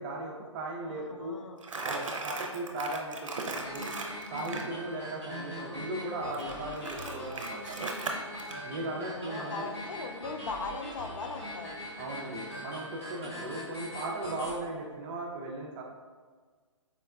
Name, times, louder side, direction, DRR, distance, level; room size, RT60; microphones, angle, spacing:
voice 1, 0.0-1.4 1.8-3.9 4.3-7.8 8.6-9.7 12.0-15.8, right 2 dB, 20° right, -1 dB, 0.4 m, -37 dB
voice 2, 0.9-1.6 7.0-7.3 8.9-11.8 13.2-13.5, left 4 dB, 75° left, 5 dB, 0.4 m, -40 dB
Crumpling crinkling, 1.6-4.7 6.3-8.6, right 3 dB, 75° right, 0.5 m, -37 dB
sound 1, 3.5-14.5, equal, 55° left, 1.3 m, -42 dB
4.2 x 2.1 x 2.3 m, 1.5 s
figure-of-eight pair, 135°, 17 cm